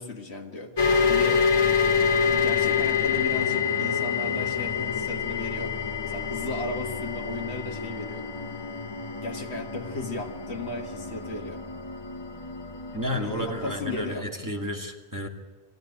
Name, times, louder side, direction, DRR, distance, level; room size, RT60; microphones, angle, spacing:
voice 1, 0.0-1.6 2.3-5.8 6.0-8.3 9.2-11.6 13.1-14.3, left 2 dB, 65° left, 3 dB, 1.9 m, -35 dB
sound 1, 0.8-14.2, left 6 dB, 25° left, 0.8 m, -27 dB
voice 2, 12.9-15.3, equal, 15° right, 0 dB, 2.0 m, -32 dB
21.5 x 15.5 x 9.9 m, 1.4 s
omnidirectional pair, 1.2 m